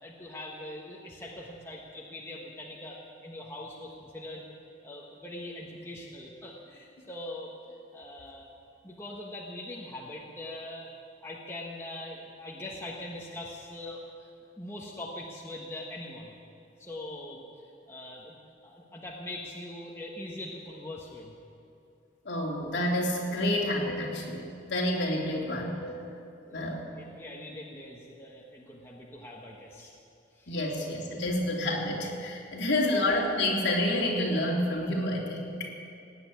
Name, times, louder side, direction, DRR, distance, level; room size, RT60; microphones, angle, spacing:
voice 1, 0.0-4.5 4.8-7.5 7.9-8.5 8.8-10.9 11.2-14.3 14.6-16.3 16.8-17.4 17.9-18.4 18.6-21.3 23.3-23.6 25.4-25.7 26.4-29.9 30.3-30.6 32.8-33.0, left 1 dB, 15° left, -3 dB, 1.2 m, -42 dB
voice 2, 22.2-26.0 26.5-26.9 30.5-35.7, left 1 dB, 60° left, -3 dB, 3.0 m, -29 dB
18.0 x 8.0 x 9.3 m, 2.5 s
head